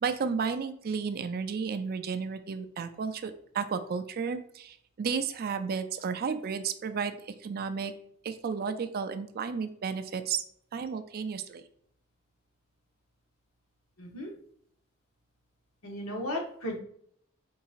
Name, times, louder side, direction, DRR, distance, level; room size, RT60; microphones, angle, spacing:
voice 1, 0.0-7.9 8.2-10.4 10.7-11.6, right 6 dB, 45° right, 9 dB, 0.4 m, -33 dB
voice 2, 14.0-14.3 15.8-16.8, left 1 dB, 75° left, 1 dB, 1.0 m, -35 dB
4.6 x 4.0 x 2.4 m, 0.65 s
head